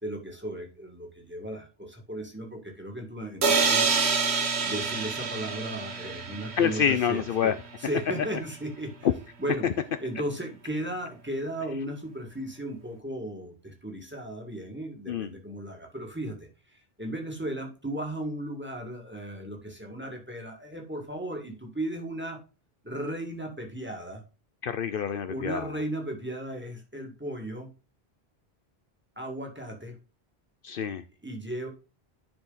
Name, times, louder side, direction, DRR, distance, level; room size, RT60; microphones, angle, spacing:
voice 1, 0.0-3.9 4.6-7.5 7.8-8.9 9.4-9.7 10.0-22.4 22.8-24.2 25.3-27.7 29.2-30.0 31.2-31.7, right 1 dB, 10° right, 2 dB, 2.0 m, -36 dB
sound 1, 3.4-7.2, right 5 dB, 85° right, 1.5 m, -27 dB
voice 2, 6.6-7.5 15.1-15.3 24.6-25.7 30.6-31.0, left 8 dB, 65° left, 11 dB, 0.7 m, -27 dB
10.5 x 4.8 x 4.0 m, 0.33 s
omnidirectional pair, 1.1 m